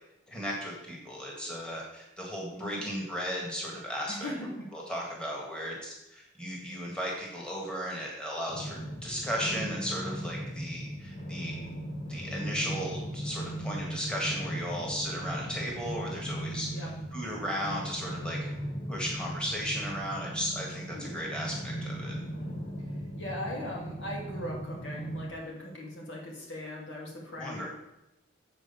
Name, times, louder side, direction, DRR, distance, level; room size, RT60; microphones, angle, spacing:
voice 1, 0.3-4.3 4.7-11.6 12.1-18.4 18.9-22.2 27.4-27.7, equal, 5° left, -3 dB, 1.6 m, -35 dB
voice 2, 2.5-2.8 4.1-4.5 6.7-6.8 16.7-16.9 20.9-21.2 23.2-27.7, left 1 dB, 65° left, -2 dB, 2.5 m, -39 dB
sound 1, 8.5-25.3, right 1 dB, 30° left, 1.0 m, -38 dB
7.6 x 4.6 x 7.0 m, 0.93 s
head